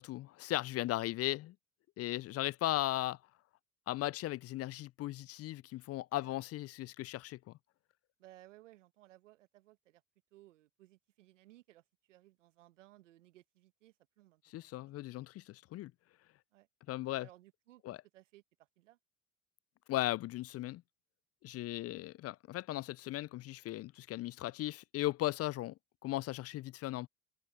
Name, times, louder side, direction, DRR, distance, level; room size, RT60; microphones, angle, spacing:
voice 1, 0.0-1.5 2.0-3.2 3.9-7.4 14.5-15.9 16.9-17.3 17.9-18.0 19.9-20.8 21.4-25.7 26.0-27.1, left 16 dB, 45° left, 0.4 m, -37 dB
voice 2, 8.2-10.0 10.3-15.2 16.5-18.4 18.8-19.0 21.6-21.8, right 15 dB, 85° right, 1.6 m, -62 dB
open air
hypercardioid pair, 60°, 36 cm